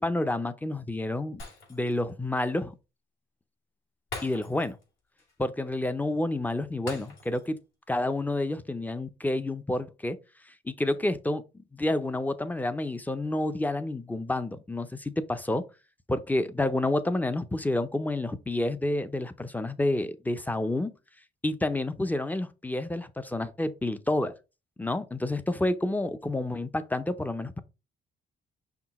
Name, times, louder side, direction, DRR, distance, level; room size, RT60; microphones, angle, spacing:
voice 1, 0.0-1.4 1.7-2.7 4.2-4.8 5.4-7.6 7.9-10.2 10.7-15.6 16.1-20.9 21.4-24.3 24.8-27.6, left 2 dB, 10° left, 0.5 m, -29 dB
Shatter, 1.4-2.1 2.5-2.6 4.1-4.9 5.2-5.3 6.9-7.6 7.9-8.1, left 3 dB, 75° left, 2.8 m, -42 dB
5.9 x 2.2 x 4.1 m
cardioid pair, 90°, 20 cm